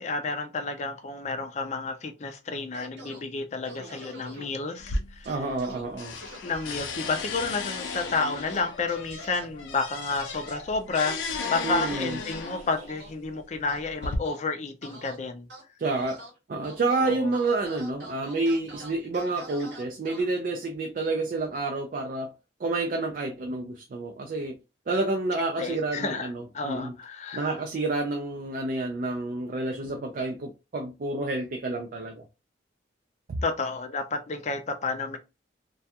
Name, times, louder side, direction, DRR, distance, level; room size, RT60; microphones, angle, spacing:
voice 1, 0.0-5.3 6.4-11.2 11.4-15.5 17.0-17.3 25.6-27.6 33.4-35.2, left 4 dB, 40° left, 0.4 m, -31 dB
sound 1, 2.7-3.2 3.6-4.4 5.2-5.8 6.1-6.4 7.8-8.2 8.5-9.4 10.0-10.6 11.4-13.1 13.7-14.4 14.8-15.2 15.5-16.3 16.6-17.0 17.3-20.2, right 1 dB, 65° right, 0.9 m, -45 dB
sound 2, 4.8-5.7 6.0-12.8 13.6-14.2, left 4 dB, 90° left, 0.5 m, -35 dB
voice 2, 5.3-6.2 11.6-12.2 15.8-16.2 16.5-22.3 22.6-24.5 24.9-26.9 27.3-32.3 33.3-33.4, right 2 dB, 45° right, 0.3 m, -29 dB
2.3 x 2.2 x 2.7 m
head